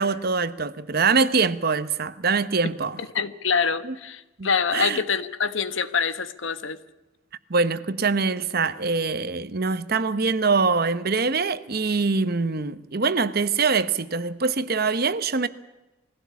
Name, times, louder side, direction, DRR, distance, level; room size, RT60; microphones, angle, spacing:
voice 1, 0.0-3.0 3.8-3.9 4.4-5.0 7.5-15.5, right 4 dB, 55° right, 1.0 m, -24 dB
voice 2, 3.1-6.8, left 6 dB, 85° left, 1.2 m, -25 dB
21.5 x 16.5 x 8.4 m
head